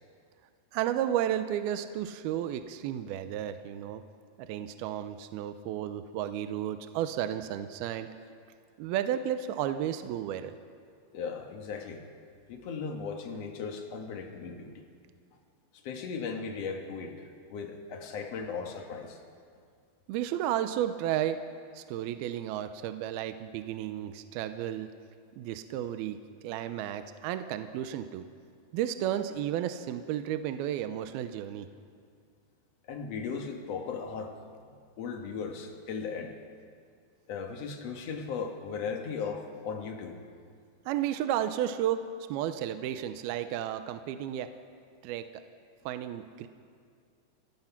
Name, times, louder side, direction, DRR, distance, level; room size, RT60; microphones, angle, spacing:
voice 1, 0.7-4.0 4.4-8.1 8.8-10.6 20.1-21.4 21.7-24.9 25.4-26.2 26.4-28.2 28.7-31.7 40.9-44.5 45.0-45.4 45.9-46.5, right 11 dB, 80° right, 10 dB, 2.4 m, -32 dB
voice 2, 11.1-12.0 12.5-14.8 15.8-19.2 32.9-34.4 35.0-36.4 37.3-40.2, left 5 dB, 70° left, 4 dB, 1.5 m, -37 dB
29.0 x 15.5 x 5.9 m, 2.2 s
omnidirectional pair, 5.0 m